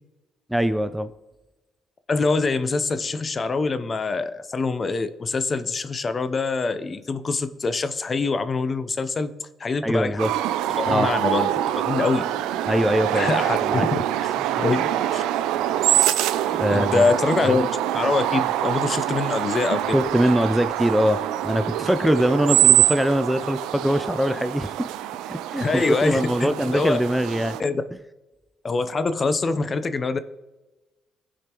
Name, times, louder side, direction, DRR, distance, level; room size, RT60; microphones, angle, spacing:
voice 1, 0.5-1.1 9.8-10.3 10.9-11.1 12.7-13.3 13.6-13.9 16.5-17.1 17.4-17.7 19.9-24.9 25.3-27.6, equal, 5° right, 11 dB, 0.4 m, -22 dB
voice 2, 2.1-9.3 9.6-10.2 10.7-12.2 13.1-14.3 14.6-15.2 16.7-17.7 17.9-20.0 25.6-27.0 27.6-27.8 28.6-30.2, left 4 dB, 35° left, 11 dB, 0.7 m, -24 dB
sound 1, 10.2-27.6, right 12 dB, 80° right, 0.4 m, -24 dB
15.0 x 5.0 x 3.0 m, 1.1 s
supercardioid pair, 65°, 0 cm